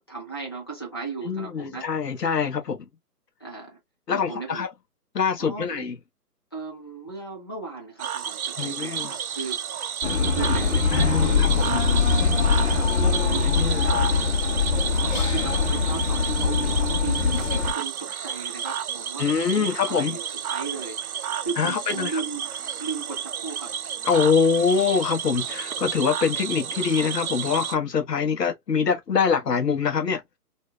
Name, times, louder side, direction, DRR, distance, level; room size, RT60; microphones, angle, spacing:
voice 1, 0.0-1.9 3.4-3.8 4.1-4.6 5.4-5.9 6.5-9.9 10.3-14.1 14.7-19.3 19.5-21.0 21.4-22.5 22.8-23.7, right 4 dB, 15° left, 0.5 m, -36 dB
voice 2, 1.3-2.9 4.1-4.7 5.1-5.9 8.6-9.1 10.9-11.8 13.5-13.9 19.2-20.2 21.6-22.2 24.0-30.2, left 6 dB, 80° left, 1.0 m, -24 dB
Cricket / Frog, 8.0-27.8, right 8 dB, 65° right, 0.6 m, -31 dB
sound 1, 10.0-17.7, left 5 dB, 50° left, 1.1 m, -22 dB
2.7 x 2.1 x 3.0 m
figure-of-eight pair, 145°, 48 cm